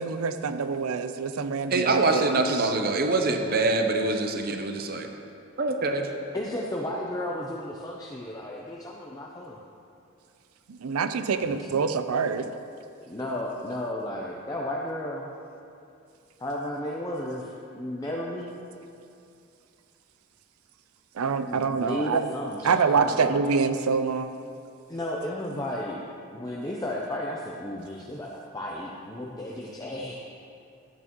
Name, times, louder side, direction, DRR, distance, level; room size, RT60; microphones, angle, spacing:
voice 1, 0.0-2.3 10.7-12.5 21.2-22.3 22.6-24.4, right 5 dB, 85° right, 10 dB, 0.5 m, -26 dB
voice 2, 1.7-5.1 5.6-6.1, right 2 dB, 45° right, 5 dB, 0.6 m, -24 dB
voice 3, 6.3-9.6 11.4-11.8 13.0-15.3 16.4-18.5 21.5-23.3 24.9-30.1, left 1 dB, 15° left, -3 dB, 0.5 m, -34 dB
12.5 x 8.6 x 3.0 m, 2.5 s
head